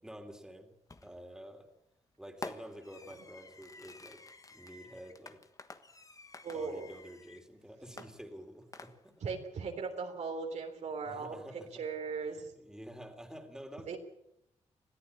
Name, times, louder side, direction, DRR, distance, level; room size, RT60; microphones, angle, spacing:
voice 1, 0.0-0.7 1.0-1.7 2.2-4.2 4.5-5.4 6.5-9.3 11.0-11.8 12.5-14.0, equal, 5° right, 4 dB, 3.4 m, -49 dB
Fireworks, 0.9-1.3 2.4-7.5 8.0-9.3, left 3 dB, 30° left, 1.4 m, -49 dB
voice 2, 6.4-6.9 9.2-11.4 11.8-12.5 13.9-14.0, right 5 dB, 75° right, 4 dB, 3.5 m, -38 dB
21.5 x 14.0 x 8.7 m, 0.83 s
cardioid pair, 80°, 12 cm